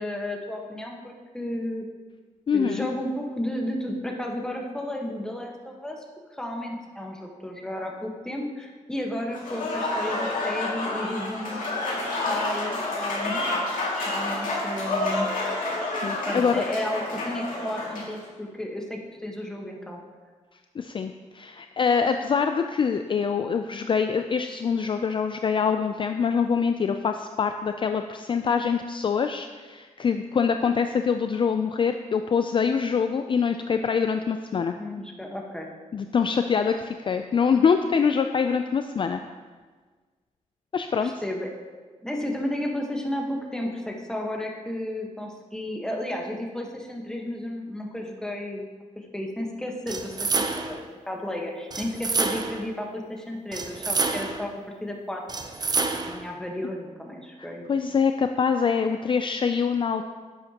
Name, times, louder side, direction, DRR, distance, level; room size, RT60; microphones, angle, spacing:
voice 1, 0.0-1.9 2.5-6.0 6.3-11.7 12.2-15.3 16.3-20.0 34.8-35.7 41.0-41.5 42.0-48.7 48.9-54.5 54.8-55.2 55.9-57.6, left 1 dB, 5° left, 0 dB, 1.2 m, -33 dB
voice 2, 2.5-2.9 16.0-16.6 20.8-34.7 35.9-39.2 40.7-41.2 57.4-60.0, left 6 dB, 40° left, 7 dB, 0.3 m, -24 dB
Applause / Crowd, 9.3-18.2, left 2 dB, 85° left, 2.2 m, -29 dB
sound 1, 49.9-50.8 51.7-52.7 53.5-54.5 55.3-56.3, right 3 dB, 30° right, 0.6 m, -28 dB
10.5 x 7.9 x 2.9 m, 1.4 s
wide cardioid pair, 120°, 13 cm